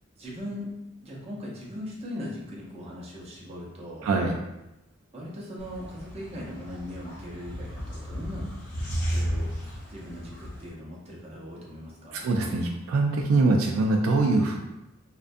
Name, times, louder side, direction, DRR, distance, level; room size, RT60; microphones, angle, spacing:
voice 1, 0.2-0.7 1.0-4.1 5.1-8.5 9.1-9.5 9.9-12.3, left 1 dB, 30° right, -4 dB, 0.6 m, -39 dB
voice 2, 4.0-4.4 12.1-14.6, right 3 dB, 80° right, 3 dB, 0.3 m, -23 dB
sound 1, 5.6-10.7, equal, 45° left, 0.7 m, -34 dB
2.4 x 2.1 x 2.5 m, 0.95 s
head